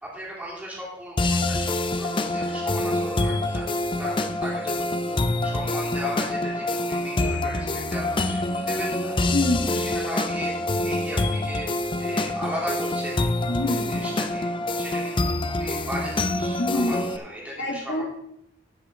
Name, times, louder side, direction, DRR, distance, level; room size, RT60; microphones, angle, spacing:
voice 1, 0.0-9.2 9.6-10.5 10.8-13.3 13.9-14.5 14.7-18.0, equal, 10° right, -6 dB, 3.1 m, -37 dB
sound 1, 1.2-17.2, left 2 dB, 25° left, 0.5 m, -26 dB
voice 2, 9.3-9.9 13.5-14.1 16.6-17.1 17.6-18.0, left 2 dB, 60° left, 1 dB, 1.9 m, -26 dB
15.0 x 6.4 x 3.7 m, 0.78 s
head